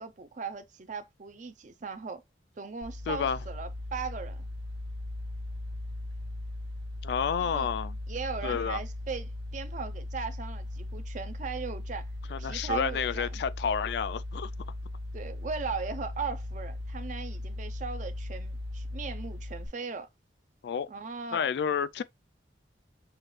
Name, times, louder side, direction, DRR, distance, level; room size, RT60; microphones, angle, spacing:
voice 1, 0.0-2.2 2.6-4.5 7.4-7.7 8.1-12.1 12.4-13.4 15.1-20.1 20.9-21.5, right 5 dB, 45° right, 0.5 m, -38 dB
sound 1, 2.8-19.7, left 1 dB, 90° right, 1.3 m, -38 dB
voice 2, 3.1-3.4 7.0-8.0 8.4-8.8 12.3-14.5 20.6-20.9 21.3-22.0, left 7 dB, 60° left, 0.3 m, -30 dB
6.3 x 2.3 x 3.1 m
head